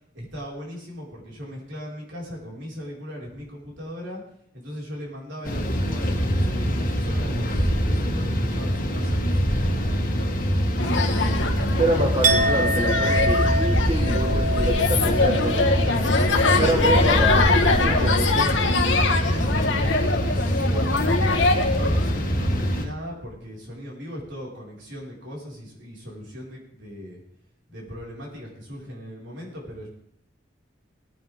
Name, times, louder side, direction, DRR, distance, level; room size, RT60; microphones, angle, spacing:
voice 1, 0.1-4.2 4.5-9.3 9.9-11.6 15.8-16.6 19.2-21.3 21.8-27.2 27.7-29.9, equal, 80° right, -4 dB, 5.0 m, -38 dB
sound 1, 5.4-22.8, equal, 45° left, 1.7 m, -24 dB
sound 2, 10.8-22.1, left 3 dB, 80° left, 1.5 m, -24 dB
voice 2, 11.8-15.6 16.6-19.0, right 1 dB, 30° right, 1 dB, 1.5 m, -27 dB
Chink clink, 12.2-18.2 18.5-18.9, right 1 dB, 45° right, 1.1 m, -28 dB
20.0 x 9.3 x 3.6 m, 0.68 s
head